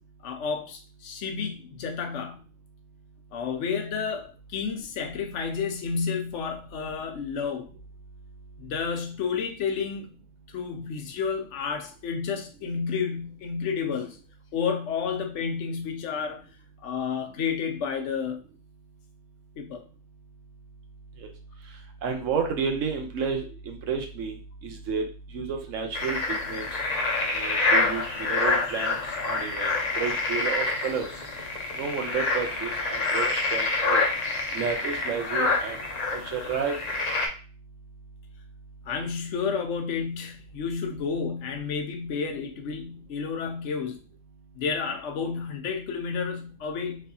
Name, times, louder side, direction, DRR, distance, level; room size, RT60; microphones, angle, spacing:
voice 1, 0.2-2.4 3.3-7.8 8.6-10.1 10.5-14.2 14.5-16.4 16.8-18.4 19.6-19.8 38.8-44.0 44.5-47.0, left 6 dB, 70° left, 0.9 m, -31 dB
voice 2, 22.0-24.3 24.6-25.0 25.3-26.2 26.5-26.6 27.3-29.0 29.2-29.7 30.0-31.0 31.8-34.0 34.5-35.8 36.1-36.7, right 6 dB, 75° right, 1.1 m, -31 dB
sound 1, 25.9-37.3, left 3 dB, 40° left, 0.7 m, -27 dB
3.5 x 3.2 x 2.7 m
omnidirectional pair, 1.4 m